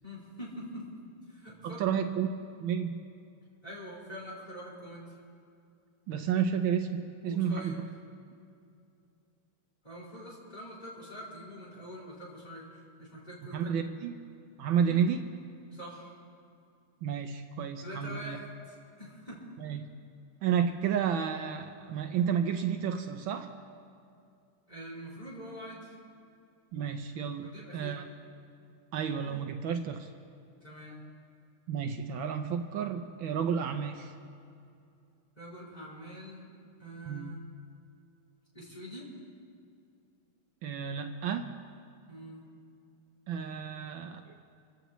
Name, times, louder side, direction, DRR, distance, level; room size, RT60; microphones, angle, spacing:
voice 1, 0.0-0.9 1.3-1.8 3.6-5.1 7.2-7.8 9.8-13.9 14.8-15.0 15.7-16.2 17.8-19.5 24.7-25.9 27.4-28.0 30.6-31.0 35.3-36.5 36.8-37.4 38.5-39.1 42.1-42.4, equal, 20° left, -6 dB, 5.1 m, -45 dB
voice 2, 1.6-2.3 2.6-2.9 6.1-7.7 13.5-14.2 14.6-15.2 17.0-18.4 19.6-19.9 20.4-23.5 26.7-28.0 28.9-30.1 31.7-34.1 37.0-37.3 40.6-41.5 43.3-44.3, right 7 dB, 75° right, 6 dB, 1.5 m, -31 dB
27.0 x 16.0 x 3.1 m, 2.5 s
omnidirectional pair, 2.3 m